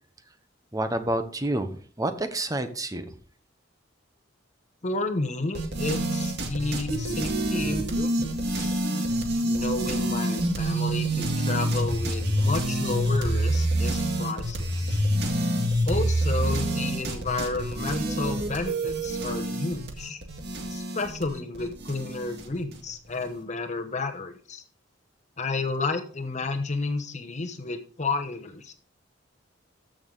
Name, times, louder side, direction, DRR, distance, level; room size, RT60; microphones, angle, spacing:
voice 1, 0.7-3.1, right 1 dB, 20° right, 9 dB, 1.0 m, -29 dB
voice 2, 4.8-8.8 9.4-15.0 15.8-20.2 20.7-24.6 25.4-28.7, left 3 dB, 35° left, 6 dB, 1.0 m, -31 dB
sound 1, 5.5-22.8, right 1 dB, 55° right, 1.9 m, -27 dB
14.0 x 6.4 x 3.9 m, 0.43 s
head